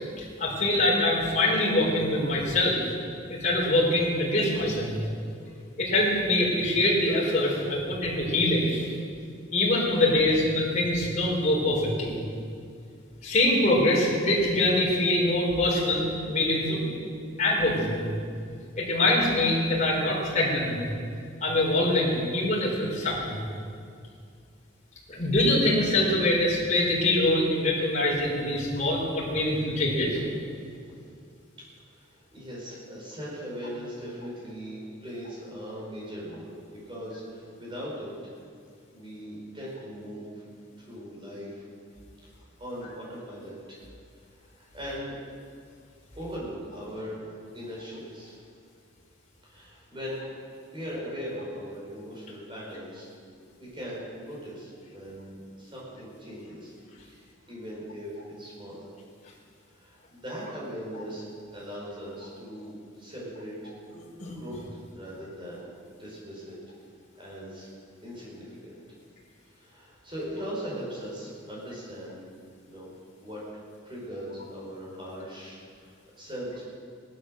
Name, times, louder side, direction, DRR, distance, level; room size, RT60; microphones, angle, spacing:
voice 1, 0.2-2.8 3.3-5.0 5.8-9.0 9.5-12.1 13.2-16.8 17.4-18.1 18.8-20.8 21.4-23.4 25.1-30.2 63.9-64.3, left 1 dB, 35° left, -4 dB, 4.1 m, -24 dB
voice 2, 31.9-38.3 38.9-40.4 40.8-41.6 42.3-43.8 44.3-45.2 46.2-47.3 47.5-48.4 49.4-50.3 50.7-53.1 53.4-56.7 57.1-58.8 59.7-63.7 64.2-64.6 64.9-65.7 66.0-66.6 67.2-67.7 68.0-68.7 69.5-72.3 72.7-72.9 73.2-73.4 73.8-76.6, equal, 25° right, -5 dB, 5.2 m, -39 dB
18.0 x 11.5 x 6.5 m, 2.3 s
head